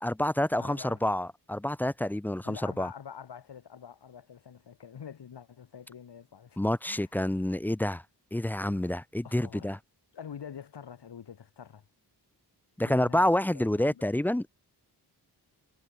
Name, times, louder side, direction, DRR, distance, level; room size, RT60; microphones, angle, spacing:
voice 1, 0.0-2.9 6.6-8.0 8.3-9.8 12.8-14.5, left 1 dB, 5° left, 0.3 m, -28 dB
voice 2, 0.6-1.0 2.4-6.6 6.9-7.1 9.2-9.7 10.1-11.9 12.8-14.0, left 8 dB, 75° left, 4.8 m, -46 dB
wide cardioid pair, 105°, 41 cm